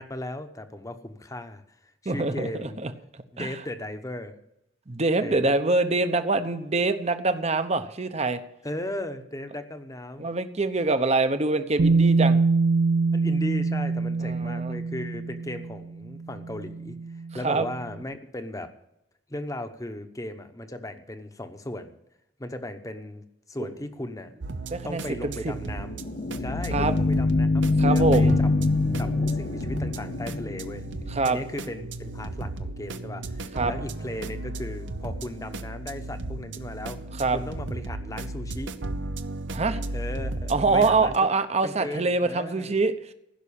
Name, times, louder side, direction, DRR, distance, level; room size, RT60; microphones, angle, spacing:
voice 1, 0.0-1.6 2.0-2.8 3.3-4.4 5.2-5.5 8.6-10.3 13.1-17.0 17.3-18.7 19.3-22.0 22.4-24.3 24.8-26.0 26.4-28.5 29.0-30.9 31.2-37.0 37.3-38.7 39.9-41.1 41.6-42.7, left 1 dB, 20° left, 8 dB, 1.0 m, -36 dB
voice 2, 2.0-3.5 4.9-8.4 10.2-12.4 14.2-14.7 17.4-17.7 24.7-25.3 26.7-26.9 27.8-28.4 31.1-31.4 33.5-33.7 37.2-37.4 39.5-39.8 40.5-42.9, right 3 dB, 35° right, 10 dB, 0.8 m, -25 dB
Bass guitar, 11.8-17.8, right 4 dB, 65° right, 0.5 m, -25 dB
sound 1, 24.4-41.2, right 2 dB, 85° right, 0.8 m, -35 dB
sound 2, 25.7-31.2, left 3 dB, 40° left, 0.4 m, -24 dB
15.5 x 6.2 x 8.6 m, 0.83 s
head